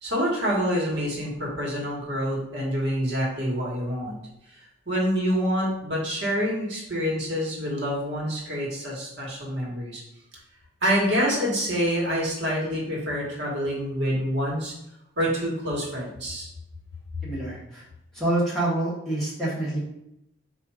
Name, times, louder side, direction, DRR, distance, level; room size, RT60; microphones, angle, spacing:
voice 1, 0.0-4.2 4.5-10.0 10.8-14.7 15.2-16.5, equal, 55° right, -3 dB, 1.3 m, -27 dB
voice 2, 17.2-17.8 18.1-19.8, right 1 dB, ahead, -8 dB, 1.1 m, -27 dB
4.2 x 2.5 x 4.7 m, 0.82 s
head